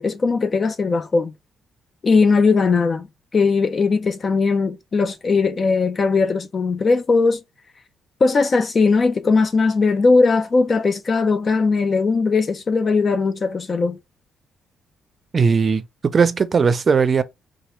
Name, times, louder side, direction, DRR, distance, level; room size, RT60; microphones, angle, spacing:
voice 1, 0.0-1.3 2.0-3.1 3.3-7.4 8.2-14.0, left 4 dB, 40° left, 0.4 m, -19 dB
voice 2, 15.3-17.2, right 5 dB, 40° right, 0.5 m, -18 dB
3.0 x 2.4 x 4.3 m
cardioid pair, 90°, 0 cm